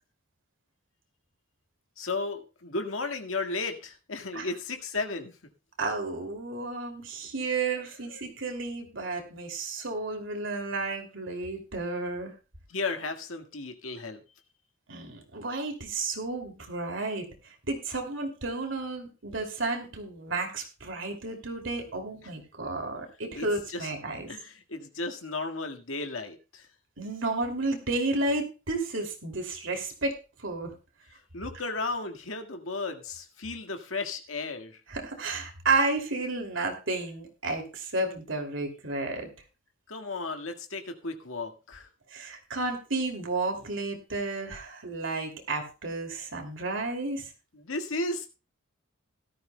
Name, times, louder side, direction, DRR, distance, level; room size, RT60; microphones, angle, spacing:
voice 1, 2.0-5.4 8.1-8.3 12.7-14.2 23.3-23.9 24.3-26.7 31.3-34.8 39.9-41.9 47.5-48.3, left 3 dB, 75° left, 4 dB, 1.9 m, -34 dB
voice 2, 5.8-12.3 14.9-17.3 17.7-24.3 27.0-30.7 34.9-39.3 42.1-47.3, right 3 dB, 60° right, 4 dB, 2.8 m, -32 dB
17.0 x 13.5 x 2.3 m, 0.30 s
head